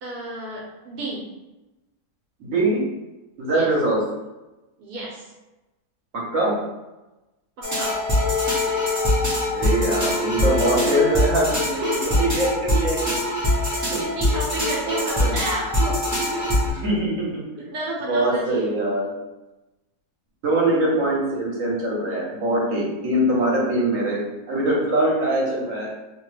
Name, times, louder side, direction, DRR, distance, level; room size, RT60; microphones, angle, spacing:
voice 1, 0.0-1.3 3.5-3.7 4.8-5.3 7.6-8.0 11.7-12.3 13.7-16.5 17.6-18.7, right 2 dB, 80° right, -4 dB, 1.2 m, -31 dB
voice 2, 2.4-2.8 3.4-4.0 6.1-6.5 9.4-13.2 13.9-14.0 14.8-15.4 16.6-17.5 18.1-19.1 20.4-24.2 24.5-25.9, right 1 dB, 60° right, -4 dB, 1.2 m, -23 dB
sound 1, 7.6-16.7, left 1 dB, 25° right, 0.4 m, -23 dB
2.9 x 2.1 x 3.2 m, 1.0 s
omnidirectional pair, 1.7 m